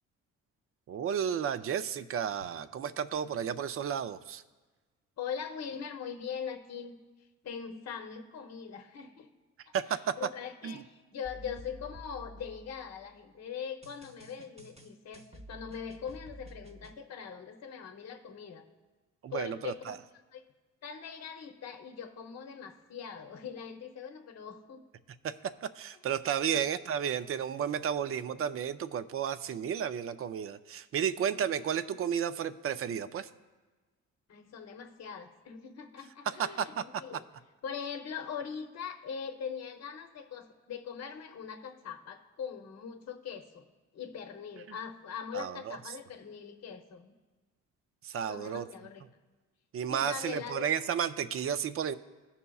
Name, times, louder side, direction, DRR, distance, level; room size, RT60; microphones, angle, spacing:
voice 1, 0.9-4.4 9.7-10.1 10.6-10.8 19.2-20.0 25.2-33.3 36.3-37.0 45.3-45.8 48.0-48.7 49.7-52.0, right 8 dB, 45° right, 13 dB, 0.4 m, -32 dB
voice 2, 5.2-7.0 7.4-9.3 9.7-18.6 19.3-20.0 20.3-20.4 20.8-24.9 26.4-26.6 34.3-37.2 37.6-43.6 43.9-47.1 48.3-49.0 49.9-50.7, left 7 dB, 55° left, 5 dB, 0.8 m, -41 dB
sound 1, 11.2-13.1 13.8-17.0, equal, 20° right, 0.8 m, -51 dB
16.5 x 5.6 x 2.3 m, 1.3 s
cardioid pair, 85°, 31 cm